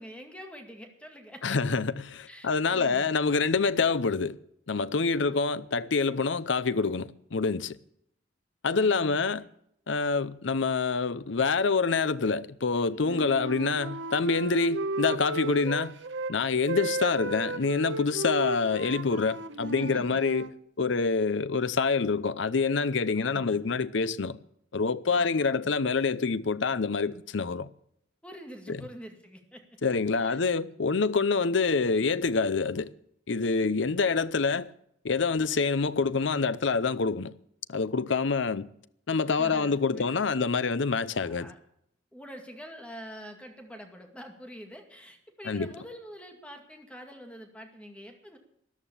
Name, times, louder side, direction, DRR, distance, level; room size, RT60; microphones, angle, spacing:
voice 1, 0.0-1.6 2.3-3.2 5.2-5.4 8.7-9.5 19.8-20.2 23.1-23.8 25.1-25.6 28.2-29.6 29.9-30.9 39.3-40.7 41.1-41.6 42.1-48.4, equal, 5° left, 2.1 m, -46 dB
voice 2, 1.4-4.4 4.7-7.8 8.6-9.5 9.9-15.9 16.3-20.5 20.8-24.4 24.7-27.7 28.7-28.8 29.8-32.9 33.3-34.7 35.0-37.3 37.7-38.7 39.1-41.5 45.5-45.7, left 4 dB, 70° left, 0.7 m, -26 dB
Wind instrument woodwind instrument, 13.0-16.3 16.6-20.5, right 2 dB, 65° right, 1.0 m, -34 dB
13.5 x 11.5 x 7.2 m
head